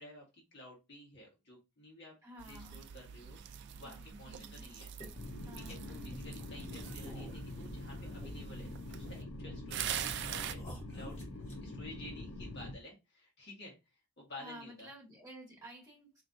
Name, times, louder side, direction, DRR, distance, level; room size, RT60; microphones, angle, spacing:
voice 1, 0.0-2.1 2.5-3.4 3.8-4.9 5.7-10.6 10.9-11.3 11.6-13.7 14.2-14.9, left 1 dB, 50° left, 1.6 m, -52 dB
voice 2, 2.2-2.8 3.8-4.8 5.5-6.2 14.4-16.2, right 1 dB, 15° right, 1.8 m, -52 dB
sound 1, 2.4-9.2 9.7-10.5, right 9 dB, 50° right, 0.3 m, -44 dB
sound 2, 4.8-8.6 8.9-9.7 10.1-10.2 10.5-11.7, equal, 25° left, 1.7 m, -52 dB
sound 3, 5.2-12.7, left 1 dB, 75° left, 0.7 m, -44 dB
4.2 x 3.0 x 2.6 m
head